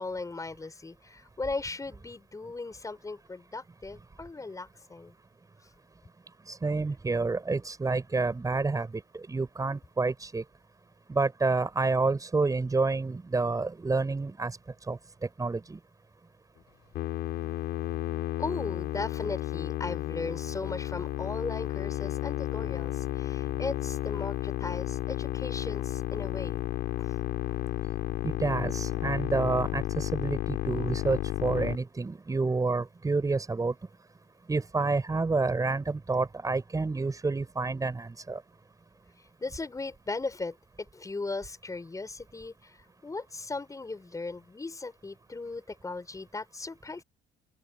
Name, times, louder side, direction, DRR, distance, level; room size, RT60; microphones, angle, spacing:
voice 1, 0.0-5.1 7.1-7.2 18.4-26.6 27.0-27.1 39.4-47.0, left 3 dB, 20° left, 7.1 m, -37 dB
voice 2, 6.5-10.4 11.1-14.6 14.9-15.8 28.2-33.7 34.5-38.4, right 3 dB, 20° right, 6.0 m, -29 dB
Musical instrument, 16.9-31.8, left 14 dB, 75° left, 6.5 m, -32 dB
open air
cardioid pair, 110°, 17 cm